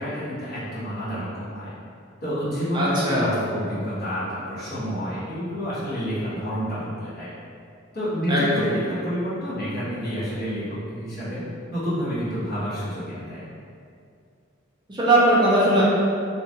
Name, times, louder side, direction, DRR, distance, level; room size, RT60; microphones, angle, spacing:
voice 1, 0.0-1.7 2.2-7.3 7.9-11.4 11.7-13.5, equal, 50° left, -11 dB, 1.2 m, -29 dB
voice 2, 2.7-3.3 8.3-8.7 14.9-15.8, right 1 dB, 25° right, -7 dB, 0.5 m, -19 dB
2.9 x 2.4 x 2.8 m, 2.4 s
head